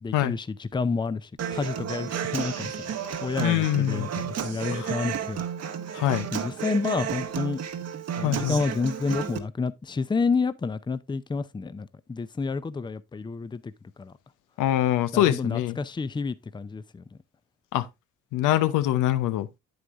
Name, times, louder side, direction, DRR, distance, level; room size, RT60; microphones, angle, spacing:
voice 1, 0.0-2.9 3.2-5.4 6.3-7.6 8.2-13.7 14.0-14.1 15.1-17.0, left 4 dB, 15° left, 0.5 m, -29 dB
Human voice / Acoustic guitar, 1.4-9.4, right 8 dB, 55° right, 1.1 m, -32 dB
voice 2, 3.4-4.1 4.7-4.9 5.9-6.3 8.2-8.6 14.6-15.7 17.7-17.9 18.3-19.5, left 13 dB, 90° left, 0.7 m, -24 dB
8.5 x 8.0 x 2.5 m
cardioid pair, 90°, 30 cm